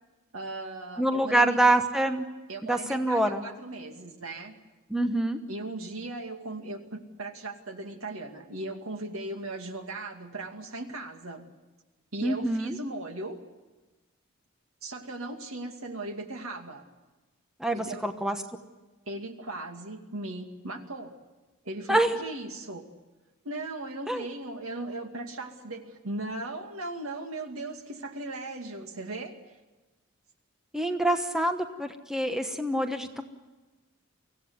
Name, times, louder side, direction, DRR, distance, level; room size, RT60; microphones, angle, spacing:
voice 1, 0.3-1.6 2.5-4.6 5.5-11.5 12.1-13.4 14.8-16.8 17.7-18.0 19.1-21.1 21.6-22.8 23.4-29.4, right 2 dB, 80° right, 5 dB, 2.4 m, -38 dB
voice 2, 1.0-2.3 2.6-3.4 4.9-5.4 12.2-12.8 17.6-18.4 21.9-22.2 24.1-24.2 30.7-33.2, right 1 dB, 5° right, 6 dB, 1.1 m, -26 dB
24.0 x 16.5 x 9.5 m, 1.2 s
head